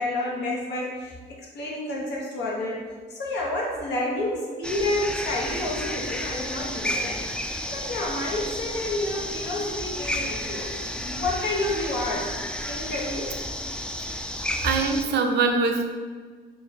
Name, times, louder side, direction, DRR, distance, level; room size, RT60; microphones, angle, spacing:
voice 1, 0.0-12.3 12.7-13.4, left 2 dB, 75° left, -3 dB, 1.0 m, -30 dB
sound 1, 4.6-15.1, left 1 dB, 5° left, 0.3 m, -32 dB
voice 2, 14.6-15.9, right 4 dB, 70° right, 4 dB, 0.5 m, -23 dB
3.0 x 2.5 x 4.0 m, 1.6 s
supercardioid pair, 65°, 18 cm